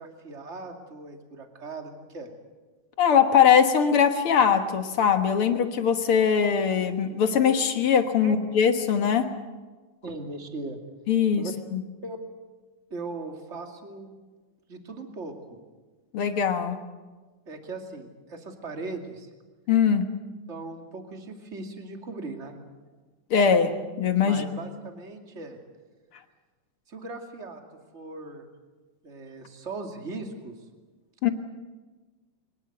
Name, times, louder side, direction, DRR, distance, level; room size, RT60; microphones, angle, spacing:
voice 1, 0.0-2.3 8.2-8.3 10.0-10.8 11.4-11.5 12.0-12.2 12.9-14.2 14.7-15.6 17.5-19.3 20.5-22.5 24.2-25.6 26.9-27.6 27.9-28.4 29.0-30.5, right 3 dB, 25° right, 4 dB, 2.3 m, -38 dB
voice 2, 3.0-9.3 11.1-11.5 11.7-11.8 16.1-16.8 19.7-20.1 23.3-24.5 31.2-31.3, left 7 dB, 55° left, 8 dB, 1.8 m, -21 dB
23.5 x 20.0 x 7.9 m, 1.3 s
omnidirectional pair, 3.8 m